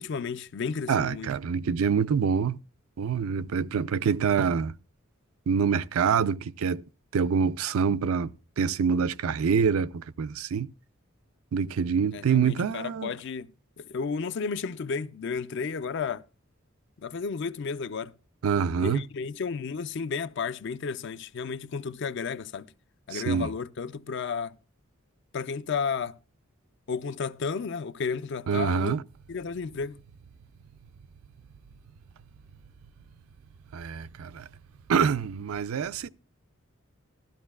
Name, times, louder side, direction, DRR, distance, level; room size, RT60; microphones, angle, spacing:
voice 1, 0.0-1.3 12.1-13.5 13.8-16.2 17.0-18.1 18.8-22.7 23.1-24.6 25.3-26.2 26.9-29.0 29.3-30.0, left 5 dB, 55° left, 0.4 m, -32 dB
voice 2, 0.9-2.6 3.0-4.7 5.5-6.8 7.1-10.7 11.5-13.1 18.4-19.0 23.1-23.5 28.5-29.0 33.7-34.5 34.9-36.1, right 6 dB, 85° right, 0.4 m, -26 dB
13.0 x 12.5 x 2.3 m
head